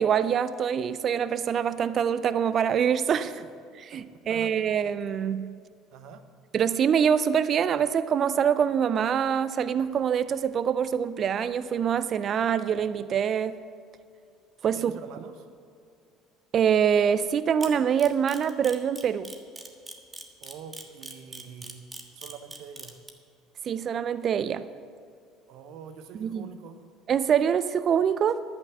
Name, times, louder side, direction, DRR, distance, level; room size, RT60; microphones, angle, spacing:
voice 1, 0.0-3.4 3.9-5.5 6.5-13.6 14.6-14.9 16.5-19.3 23.6-24.7 26.2-26.5 27.1-28.4, right 8 dB, 45° right, 14 dB, 0.5 m, -25 dB
voice 2, 3.2-4.8 5.9-6.2 14.7-15.5 20.4-21.9 22.2-23.0 25.5-26.8, right 7 dB, 60° right, 9 dB, 0.9 m, -45 dB
Camera, 17.6-23.1, right 3 dB, 20° right, 1.5 m, -40 dB
11.5 x 8.9 x 6.8 m, 2.3 s
hypercardioid pair, 60°, 0 cm